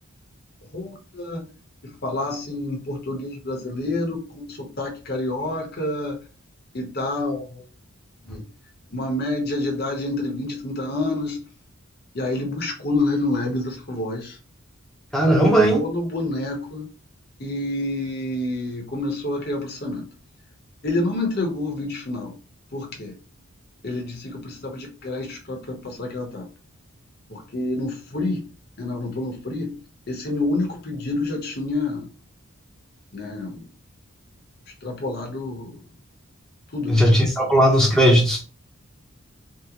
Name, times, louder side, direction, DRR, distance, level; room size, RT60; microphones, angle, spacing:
voice 1, 0.7-1.4 1.8-6.2 6.7-7.7 8.2-8.4 8.9-11.4 12.1-14.4 15.3-16.9 17.4-20.1 20.8-22.3 22.7-23.1 23.8-26.5 27.3-28.5 28.8-29.8 30.1-32.1 33.1-33.7 34.8-35.8 36.7-37.1, left 2 dB, 45° left, 0.8 m, -28 dB
voice 2, 15.1-15.8 36.9-38.4, equal, ahead, 0.7 m, -17 dB
3.6 x 2.1 x 2.8 m
head